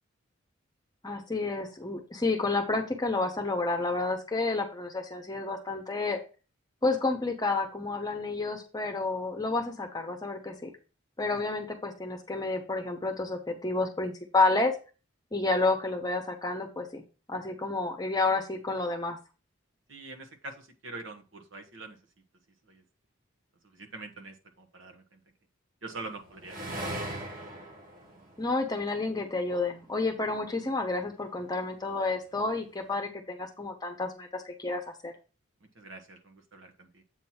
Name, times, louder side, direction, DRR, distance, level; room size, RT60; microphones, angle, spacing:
voice 1, 1.0-6.2 6.8-10.7 11.2-14.7 15.3-17.0 17.3-19.2 28.4-35.1, left 3 dB, 20° left, 3 dB, 1.0 m, -30 dB
voice 2, 19.9-22.0 22.7-22.8 23.6-25.2 25.8-27.0 35.7-37.0, right 3 dB, 70° right, 5 dB, 1.2 m, -44 dB
sound 1, 25.9-29.5 30.3-31.2, right 1 dB, 45° right, 1.7 m, -40 dB
7.9 x 3.0 x 5.7 m, 0.33 s
head